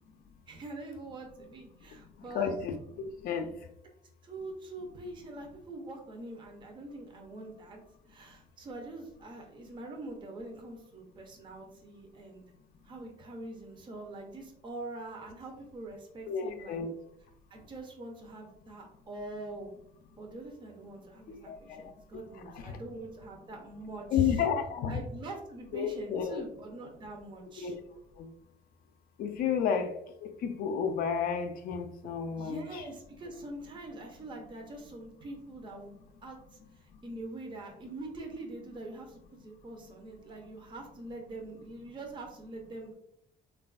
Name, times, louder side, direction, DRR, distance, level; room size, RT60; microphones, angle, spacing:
voice 1, 0.5-2.6 4.2-7.8 8.1-12.4 12.8-16.8 17.5-19.7 20.2-24.4 24.9-27.8 32.3-42.9, right 2 dB, 30° right, 1 dB, 0.5 m, -44 dB
voice 2, 2.3-3.5 16.3-16.9 21.3-21.8 22.6-22.8 24.1-25.0 25.7-26.4 27.6-27.7 28.2-28.3 29.2-29.9 30.4-32.6, left 7 dB, 60° left, 6 dB, 0.4 m, -31 dB
3.3 x 2.3 x 2.3 m, 0.77 s
cardioid pair, 110°, 17 cm